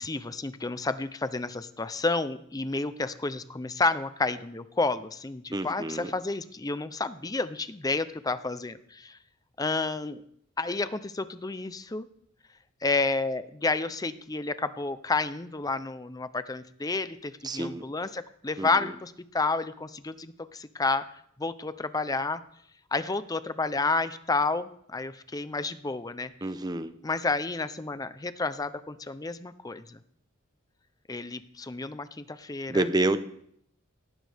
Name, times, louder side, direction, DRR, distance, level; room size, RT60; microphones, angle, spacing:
voice 1, 0.0-9.2 9.6-10.2 10.6-12.1 12.8-22.4 22.9-26.3 27.0-30.0 31.1-32.8, left 3 dB, 15° left, 13 dB, 0.6 m, -30 dB
voice 2, 5.5-6.1 17.4-17.9 18.6-18.7 26.4-26.9 32.7-33.2, right 2 dB, 20° right, 11 dB, 0.7 m, -28 dB
18.0 x 15.5 x 3.5 m, 0.68 s
head